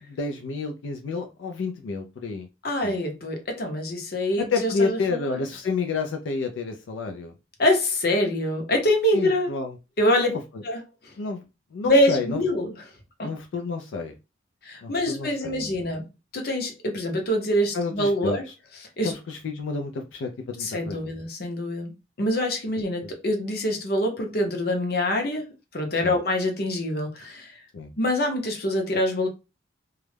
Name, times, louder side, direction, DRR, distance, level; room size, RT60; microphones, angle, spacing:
voice 1, 0.1-2.5 2.8-3.0 4.4-7.3 9.1-9.7 10.1-10.4 11.2-11.4 11.7-12.4 13.2-14.1 14.8-15.7 17.7-18.4 19.0-21.0 26.0-26.2 27.7-27.9, left 4 dB, 85° left, 0.4 m, -29 dB
voice 2, 2.6-5.5 7.6-9.5 10.0-10.3 10.6-10.8 11.8-12.7 13.2-13.3 14.6-16.1 16.3-18.4 19.0-19.1 20.6-21.9 22.2-25.4 25.7-27.6 28.0-29.3, left 1 dB, 55° left, 0.7 m, -25 dB
2.3 x 2.0 x 3.2 m
head